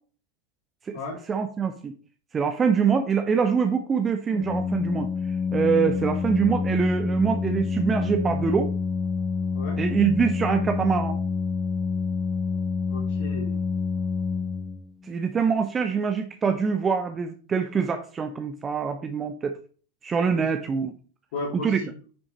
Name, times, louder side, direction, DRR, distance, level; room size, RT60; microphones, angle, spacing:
voice 1, 1.3-1.9 2.3-5.1 5.5-8.7 9.8-11.2 15.1-19.6 20.0-20.9 21.6-21.8, right 6 dB, 20° right, 6 dB, 0.7 m, -24 dB
Organ, 4.3-15.1, left 5 dB, 10° left, 0.4 m, -27 dB
voice 2, 12.9-13.6 20.3-20.4 21.3-21.9, left 2 dB, 55° left, -4 dB, 2.8 m, -35 dB
8.8 x 6.2 x 3.1 m, 0.40 s
figure-of-eight pair, 90°, 0 cm